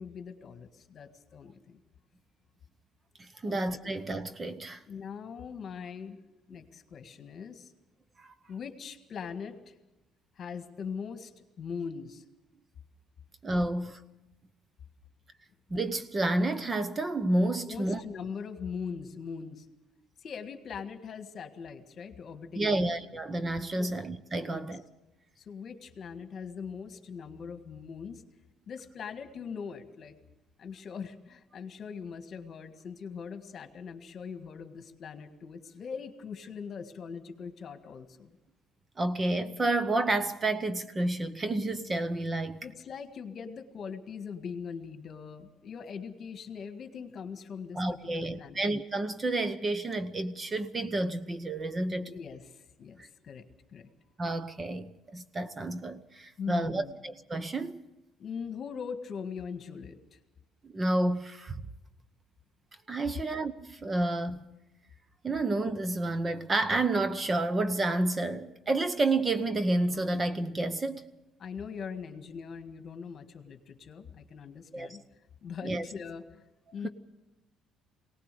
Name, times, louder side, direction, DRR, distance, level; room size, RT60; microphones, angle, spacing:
voice 1, 0.0-1.8 3.5-3.9 4.8-6.2 6.5-7.7 8.5-9.7 10.4-11.3 11.6-12.2 17.7-19.7 20.2-22.9 23.8-24.0 24.4-24.7 25.4-28.2 28.7-30.2 30.6-38.3 42.6-48.6 52.0-53.4 53.7-53.9 56.4-56.9 58.2-60.2 71.4-75.0 75.4-76.4 76.7-76.9, left 6 dB, 40° left, 1.7 m, -41 dB
voice 2, 3.2-4.8 8.2-8.3 13.4-14.0 15.7-18.0 22.6-24.8 39.0-42.6 47.7-52.1 53.0-53.1 54.2-57.8 60.6-61.5 62.9-64.4 65.2-71.1 74.7-74.9 75.6-75.8 76.8-76.9, right 2 dB, 20° right, 0.8 m, -30 dB
22.5 x 18.5 x 6.8 m
cardioid pair, 135°, 0 cm